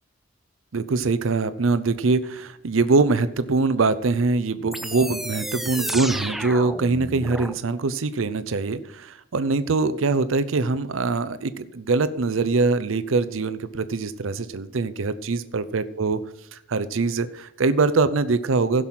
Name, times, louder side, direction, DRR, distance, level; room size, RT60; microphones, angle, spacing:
voice 1, 0.7-16.2 16.5-18.9, right 3 dB, 75° right, 13 dB, 0.6 m, -23 dB
sound 1, 4.7-7.6, right 1 dB, ahead, 0.5 m, -31 dB
16.0 x 6.2 x 5.8 m, 0.74 s
head